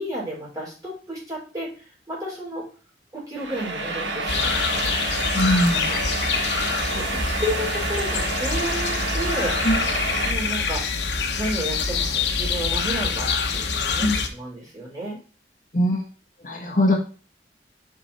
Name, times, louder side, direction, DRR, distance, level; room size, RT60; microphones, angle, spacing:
voice 1, 0.0-2.6 3.1-5.0 5.7-6.0 6.8-9.5 10.2-10.8 11.4-15.2, equal, 20° right, -5 dB, 4.4 m, -32 dB
sound 1, 3.4-10.3, right 3 dB, 90° right, 1.5 m, -28 dB
sound 2, 4.3-14.3, left 5 dB, 85° left, 1.1 m, -26 dB
voice 2, 5.3-5.8 9.6-9.8 14.0-14.2 15.7-16.0 16.4-17.0, left 1 dB, 45° left, 0 dB, 1.5 m, -20 dB
6.9 x 5.9 x 4.3 m, 0.37 s
head